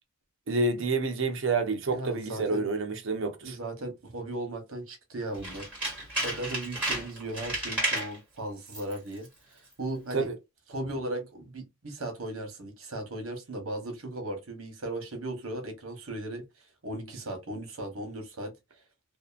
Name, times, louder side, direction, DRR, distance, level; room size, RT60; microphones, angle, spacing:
voice 1, 0.5-3.6 10.1-10.3, right 3 dB, 65° right, 0.7 m, -28 dB
voice 2, 1.9-2.7 3.4-10.3 10.7-18.5, right 1 dB, 85° right, 1.0 m, -37 dB
Tools, 5.3-8.2 8.7-9.0 9.2-9.3, right 1 dB, 10° right, 1.7 m, -32 dB
2.7 x 2.5 x 2.4 m
head